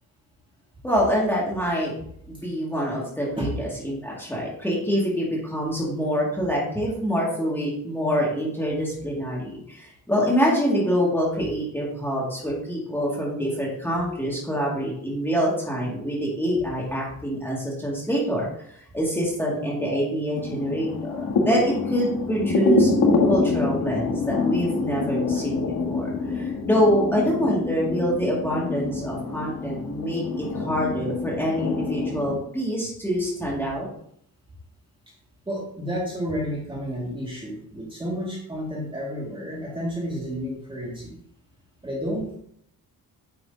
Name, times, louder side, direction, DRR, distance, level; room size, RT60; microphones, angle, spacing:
voice 1, 0.8-1.9 2.3-22.9 23.2-33.9, equal, 5° left, -5 dB, 2.3 m, -25 dB
sound 1, 20.3-32.4, left 4 dB, 90° left, 1.6 m, -26 dB
voice 2, 35.5-41.2 41.8-42.4, equal, 15° right, -4 dB, 2.3 m, -31 dB
9.4 x 6.5 x 2.9 m, 0.67 s
wide cardioid pair, 145°, 36 cm